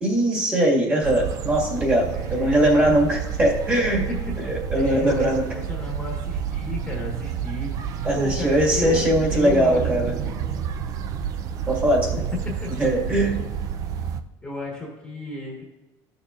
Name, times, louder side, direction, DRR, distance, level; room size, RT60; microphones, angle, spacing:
voice 1, 0.0-4.1 4.5-5.4 8.0-10.1 11.7-12.1 12.8-13.4, right 1 dB, 20° right, -3 dB, 1.8 m, -21 dB
sound 1, 1.0-14.2, right 8 dB, 40° right, 0.4 m, -30 dB
voice 2, 2.1-2.9 4.1-7.7 8.1-9.0 9.3-9.9 10.2-10.7 12.3-12.9 14.4-15.6, left 2 dB, 10° left, -2 dB, 1.3 m, -33 dB
14.0 x 6.6 x 2.4 m, 1.1 s
cardioid pair, 160°, 9 cm